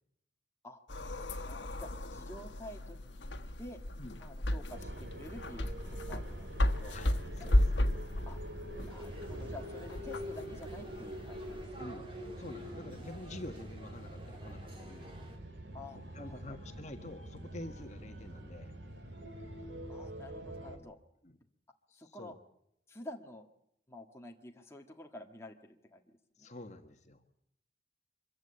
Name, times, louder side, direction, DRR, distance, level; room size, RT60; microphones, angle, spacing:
sound 1, 0.9-11.6, left 1 dB, 85° left, 1.4 m, -34 dB
voice 1, 1.4-3.0 3.6-3.8 4.2-7.0 7.4-7.5 8.3-8.4 8.8-11.6 15.7-16.6 19.9-21.0 22.0-22.4 22.9-23.5 23.9-26.5, left 1 dB, 15° left, 1 dB, 1.7 m, -49 dB
sound 2, 4.7-20.8, equal, 75° right, 3.1 m, -45 dB
sound 3, 8.9-15.4, right 1 dB, 30° right, 3.3 m, -53 dB
voice 2, 12.4-15.1 16.1-18.7 21.2-21.3 21.9-22.3 26.4-27.2, left 1 dB, 40° left, 6 dB, 1.6 m, -47 dB
24.5 x 15.0 x 8.7 m, 0.77 s
head